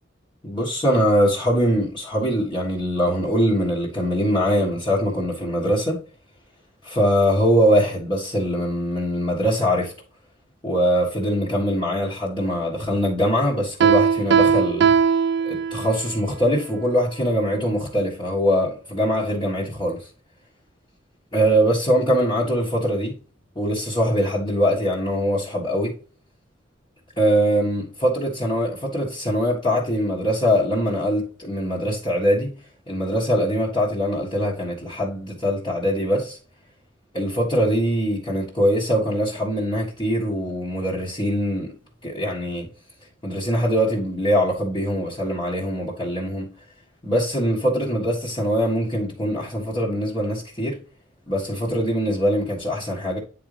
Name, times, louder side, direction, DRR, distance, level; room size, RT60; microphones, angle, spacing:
voice 1, 0.4-6.0 6.8-9.9 10.6-15.0 15.4-20.1 21.3-23.1 23.5-26.0 27.2-32.5 32.9-36.4 37.1-41.7 42.0-42.7 43.2-46.5 47.0-50.8 51.3-53.2, equal, 25° left, 1.5 m, -22 dB
Piano, 13.8-16.1, right 6 dB, 60° right, 0.4 m, -19 dB
9.6 x 3.9 x 3.3 m
head